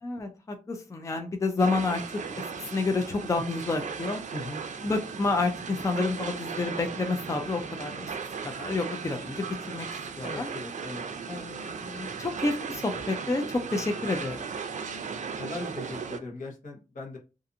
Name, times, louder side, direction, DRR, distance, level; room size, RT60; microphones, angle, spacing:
voice 1, 0.0-4.2 4.8-8.1 8.4-10.5 11.3-14.4, left 3 dB, 25° left, 5 dB, 0.4 m, -30 dB
sound 1, 1.6-16.2, right 6 dB, 65° right, 0.4 m, -37 dB
voice 2, 4.3-4.7 10.2-11.2 15.4-17.2, left 2 dB, 80° left, -1 dB, 0.9 m, -39 dB
2.5 x 2.5 x 2.7 m, 0.30 s
wide cardioid pair, 120°, 13 cm